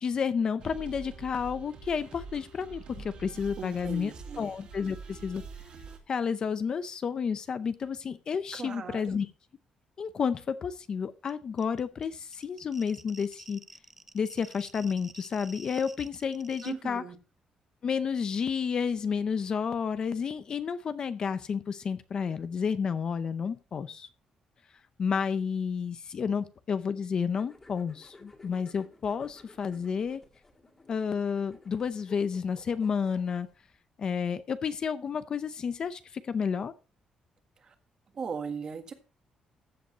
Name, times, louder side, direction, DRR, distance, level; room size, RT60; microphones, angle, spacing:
voice 1, 0.0-4.1 4.4-5.4 6.1-9.3 10.0-13.6 14.1-17.0 17.8-24.1 25.0-30.2 30.9-33.5 34.0-36.7, left 6 dB, 35° left, 12 dB, 0.6 m, -31 dB
sound 1, 0.6-6.0, right 5 dB, 50° right, 2.9 m, -45 dB
voice 2, 3.6-4.5 8.5-9.2 16.6-17.2 37.6-37.7 38.1-38.9, right 5 dB, 35° right, 7 dB, 1.5 m, -38 dB
sound 2, 11.3-11.4 11.6-16.7, right 2 dB, 10° right, 0.6 m, -50 dB
sound 3, 27.3-33.5, left 2 dB, 20° left, 2.0 m, -56 dB
14.5 x 8.0 x 2.9 m, 0.34 s
cardioid pair, 175°, 2 cm